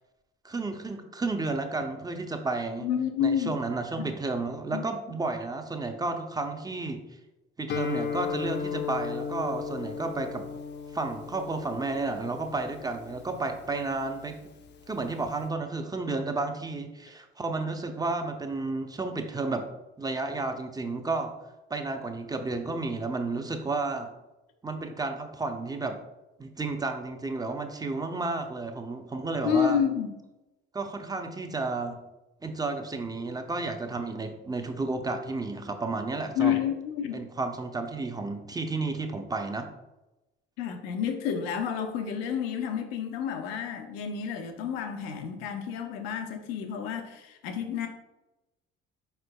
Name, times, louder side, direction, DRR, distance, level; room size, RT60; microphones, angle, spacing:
voice 1, 0.4-2.9 3.2-7.0 7.6-10.5 10.9-14.4 14.9-19.7 20.0-21.3 21.7-24.1 24.6-26.0 26.4-29.8 30.7-32.0 32.4-36.6 37.1-39.7, right 3 dB, 15° right, 6 dB, 0.5 m, -32 dB
voice 2, 2.8-3.6 4.0-4.1 4.7-4.8 29.4-30.1 36.4-37.2 40.6-47.9, left 8 dB, 85° left, 6 dB, 0.6 m, -29 dB
Guitar, 7.7-15.4, left 6 dB, 35° left, 0.5 m, -36 dB
4.4 x 4.4 x 2.2 m, 1.0 s
hypercardioid pair, 60°, 30 cm